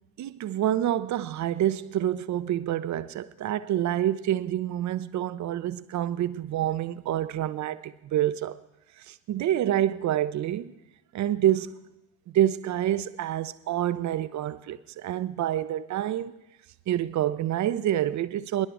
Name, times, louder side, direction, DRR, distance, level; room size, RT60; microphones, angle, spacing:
voice 1, 0.2-8.6 9.0-10.7 11.1-11.8 12.3-16.3 16.9-18.7, right 12 dB, 40° right, 0.7 m, -27 dB
23.0 x 11.0 x 3.6 m
figure-of-eight pair, 55°, 45 cm